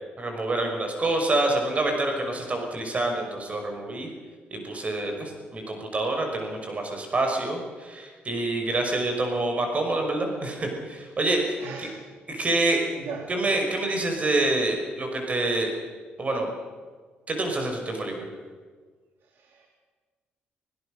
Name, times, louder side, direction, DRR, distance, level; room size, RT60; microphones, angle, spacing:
voice 1, 0.2-4.1 4.5-11.9 12.3-12.8 13.3-15.7 16.2-16.5 17.3-18.3, right 2 dB, 35° right, 3 dB, 5.9 m, -27 dB
voice 2, 11.6-12.0 12.9-13.3 19.3-19.7, right 5 dB, 75° right, 1 dB, 3.1 m, -38 dB
25.0 x 16.5 x 6.7 m, 1.5 s
cardioid pair, 85°, 4 cm